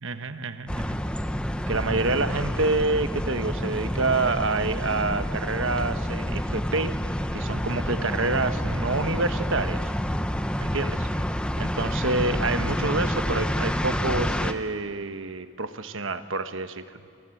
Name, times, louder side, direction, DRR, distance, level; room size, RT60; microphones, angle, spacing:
voice 1, 0.0-1.0 1.7-6.9 7.3-9.9 10.6-11.1 11.6-17.0, right 3 dB, 60° right, 10 dB, 1.1 m, -27 dB
sound 1, 0.7-14.5, equal, 5° left, 0.7 m, -28 dB
29.0 x 23.5 x 7.8 m, 2.2 s
head